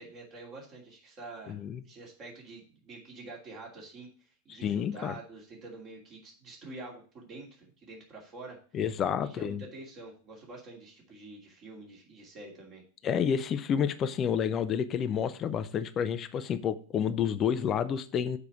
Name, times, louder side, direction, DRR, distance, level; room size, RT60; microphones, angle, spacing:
voice 1, 0.0-8.6 9.2-12.8, right 2 dB, 30° right, 2.7 m, -47 dB
voice 2, 1.5-1.8 4.5-5.1 8.7-9.6 13.0-18.4, left 8 dB, 30° left, 0.6 m, -29 dB
6.9 x 4.7 x 6.8 m
figure-of-eight pair, 90°, 0 cm